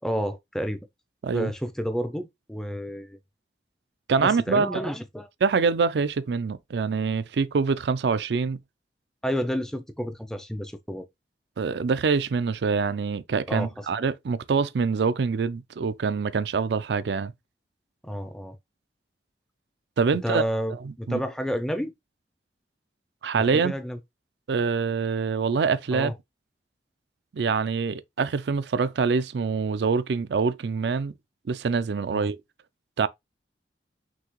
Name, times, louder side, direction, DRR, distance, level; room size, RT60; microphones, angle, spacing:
voice 1, 0.0-0.8 1.3-3.2 4.2-5.3 9.2-11.1 13.5-13.8 18.0-18.6 20.2-21.9 23.3-24.0 25.9-26.1 32.1-32.3, equal, 5° left, 0.5 m, -30 dB
voice 2, 4.1-4.8 5.4-8.6 11.6-17.3 20.0-20.4 20.8-21.2 23.2-23.7 24.5-26.1 27.3-31.1 31.5-32.4 33.0-33.1, right 5 dB, 65° right, 0.4 m, -25 dB
6.0 x 2.7 x 3.0 m
head